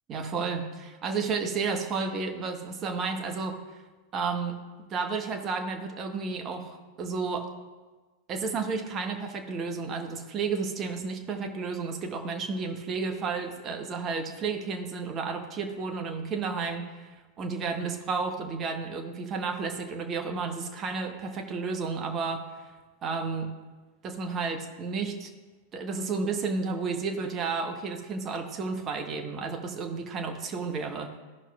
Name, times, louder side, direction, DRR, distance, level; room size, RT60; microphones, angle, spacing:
voice 1, 0.1-3.6 4.1-4.6 4.9-7.4 8.3-17.1 17.4-22.4 23.0-23.5 24.0-25.3 25.7-31.1, right 4 dB, 30° right, 4 dB, 0.8 m, -32 dB
14.0 x 5.8 x 2.3 m, 1.3 s
figure-of-eight pair, 90°, 0 cm